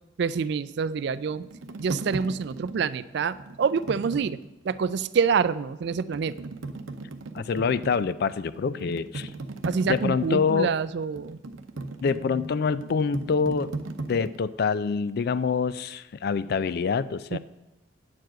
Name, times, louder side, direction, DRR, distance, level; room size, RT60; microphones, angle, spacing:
voice 1, 0.2-1.5 1.8-4.4 4.6-6.5 9.7-11.4 17.3-17.4, right 6 dB, 60° right, 16 dB, 0.3 m, -27 dB
sound 1, 0.8-4.9 5.3-5.4 5.9-14.4, right 3 dB, 90° right, 0.7 m, -38 dB
voice 2, 7.3-9.3 9.9-10.7 12.0-13.7 14.1-17.4, left 5 dB, 55° left, 15 dB, 0.3 m, -26 dB
9.3 x 4.7 x 7.5 m, 0.98 s
head